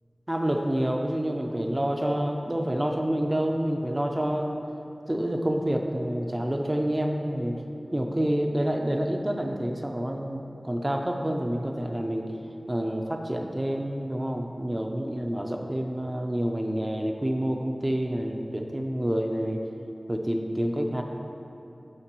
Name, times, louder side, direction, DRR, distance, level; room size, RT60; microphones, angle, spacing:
voice 1, 0.3-4.6 5.1-7.6 7.9-12.3 12.7-19.6 20.1-21.0, right 1 dB, 25° right, 2 dB, 0.5 m, -28 dB
12.5 x 4.6 x 3.0 m, 2.9 s
wide cardioid pair, 50°, 0 cm